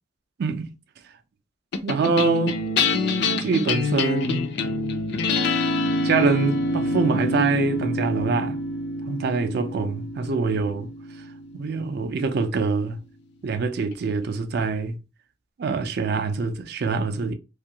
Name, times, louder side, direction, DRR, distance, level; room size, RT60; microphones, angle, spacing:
voice 1, 0.4-0.7 1.8-2.6 3.4-4.5 6.0-8.6 9.1-10.9 11.5-13.0 13.4-15.0 15.6-17.3, right 4 dB, 55° right, 0.4 m, -24 dB
sound 1, 1.7-12.3, left 2 dB, 55° left, 0.4 m, -26 dB
2.5 x 2.3 x 2.8 m
head